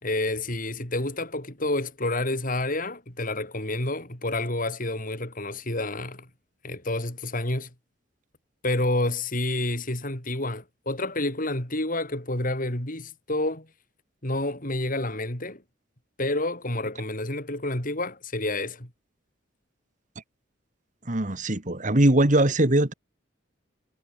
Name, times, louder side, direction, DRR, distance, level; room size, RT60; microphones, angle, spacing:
voice 1, 0.0-6.3 6.6-7.7 8.6-13.7 14.2-15.6 16.2-18.9, left 2 dB, 45° left, 5.7 m, -29 dB
voice 2, 21.1-22.9, right 1 dB, 40° right, 2.1 m, -21 dB
head